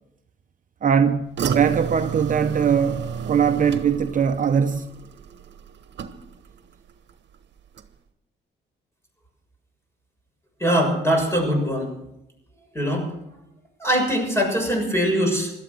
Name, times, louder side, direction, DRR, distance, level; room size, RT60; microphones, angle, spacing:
voice 1, 0.8-4.9, right 7 dB, 40° right, 0.9 m, -21 dB
sound 1, 1.4-6.6 6.9-7.4 7.8-7.9, right 7 dB, 65° right, 1.3 m, -32 dB
voice 2, 10.6-11.9 12.7-13.1 13.8-15.5, equal, 15° left, 6.7 m, -22 dB
17.5 x 13.0 x 6.5 m
cardioid pair, 90°, 20 cm